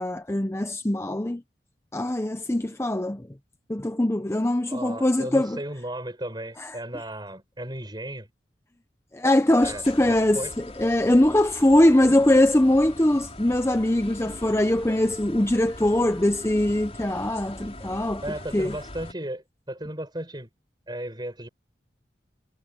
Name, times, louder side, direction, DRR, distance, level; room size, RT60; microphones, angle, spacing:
voice 1, 0.0-1.4 1.9-3.2 3.7-5.6 6.6-6.8 9.1-18.2 18.5-18.8, left 1 dB, 15° left, 0.7 m, -22 dB
voice 2, 4.7-8.3 9.6-10.5 12.1-12.2 18.2-20.5 20.9-21.5, right 1 dB, 25° right, 7.4 m, -35 dB
sound 1, 9.6-19.1, left 1 dB, 35° left, 4.9 m, -42 dB
head